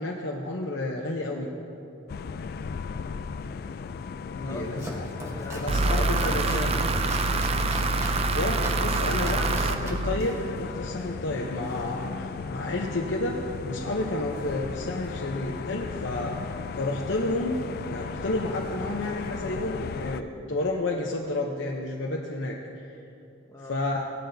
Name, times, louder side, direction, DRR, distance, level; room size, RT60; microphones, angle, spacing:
voice 1, 0.0-1.5 4.3-5.1 5.5-6.7 8.3-16.4 16.8-17.6 17.9-22.6 23.7-24.0, left 2 dB, 80° left, -1 dB, 0.8 m, -31 dB
sound 1, 2.1-20.2, left 5 dB, 55° left, 0.3 m, -36 dB
voice 2, 4.4-7.6 9.1-9.8 23.5-23.9, left 1 dB, 20° left, 0 dB, 0.9 m, -41 dB
Domestic sounds home sounds, 4.4-11.4, equal, 15° right, 1.2 m, -40 dB
sound 2, 5.7-10.6, right 3 dB, 35° right, 0.4 m, -26 dB
17.0 x 11.5 x 2.7 m, 2.7 s
head